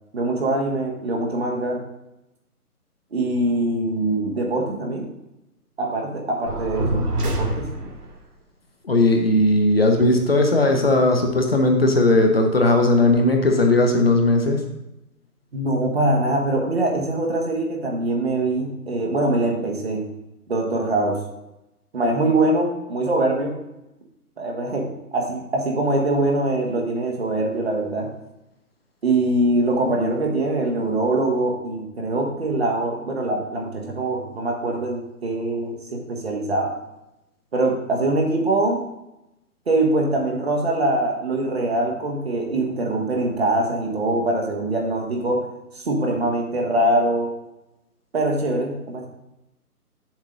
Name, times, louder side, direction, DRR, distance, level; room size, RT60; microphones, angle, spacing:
voice 1, 0.1-1.8 3.1-5.1 5.8-7.7 15.5-20.0 20.5-21.2 21.9-23.6 24.4-24.9 25.1-28.1 29.0-36.7 37.5-38.8 39.7-45.4 45.8-47.3 48.1-49.1, right 2 dB, 40° right, 0 dB, 1.5 m, -23 dB
sound 1, 6.5-8.1, right 1 dB, 80° right, 2.2 m, -25 dB
voice 2, 8.8-14.6, left 2 dB, 40° left, 3 dB, 0.8 m, -17 dB
7.4 x 6.5 x 3.9 m, 0.91 s
hypercardioid pair, 180°, 46 cm